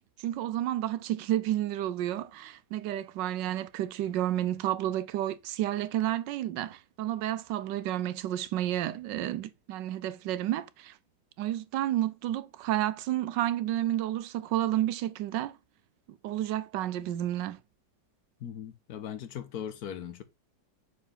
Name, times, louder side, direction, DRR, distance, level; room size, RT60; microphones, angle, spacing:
voice 1, 0.2-10.9 11.4-15.6 16.2-17.6, right 13 dB, 80° right, 1.3 m, -31 dB
voice 2, 18.4-20.2, left 9 dB, 65° left, 1.3 m, -39 dB
7.0 x 4.6 x 3.3 m
omnidirectional pair, 1.9 m